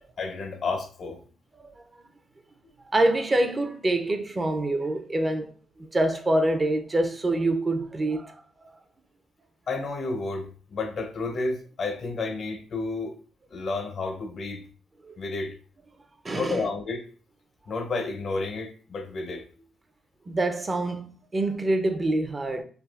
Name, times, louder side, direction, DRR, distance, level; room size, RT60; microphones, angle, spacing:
voice 1, 0.2-1.2 9.7-14.6 15.2-15.6 16.3-17.0 17.7-19.5, left 3 dB, 50° left, 0.5 m, -31 dB
voice 2, 2.9-5.5 5.8-8.4 15.0-15.1 16.2-16.7 20.3-22.6, right 2 dB, 25° right, 0.4 m, -26 dB
3.4 x 2.3 x 2.3 m
cardioid pair, 100°, 0 cm